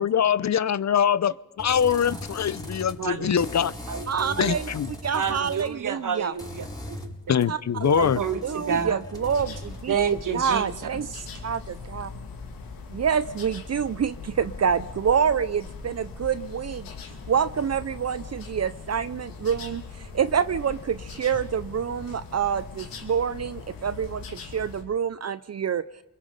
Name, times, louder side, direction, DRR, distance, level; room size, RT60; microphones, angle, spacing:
voice 1, 0.0-3.7 4.4-4.9 7.3-8.2, left 8 dB, 55° left, 18 dB, 0.7 m, -23 dB
sound 1, 1.6-3.0 3.4-5.7 6.4-10.0, left 1 dB, 10° left, 5.1 m, -39 dB
voice 2, 3.0-3.5 3.9-4.6 5.1-7.0 8.0-9.0 9.9-10.7 11.1-11.3, right 7 dB, 65° right, 9 dB, 1.7 m, -29 dB
voice 3, 4.1-4.7 5.0-6.3 7.5-8.1 8.4-9.9 10.3-11.1 11.4-12.1 12.9-16.9 17.3-25.8, right 7 dB, 50° right, 14 dB, 0.7 m, -27 dB
sound 2, 9.1-24.8, left 4 dB, 90° left, 2.9 m, -40 dB
28.5 x 22.0 x 5.2 m, 0.96 s
cardioid pair, 55°, 34 cm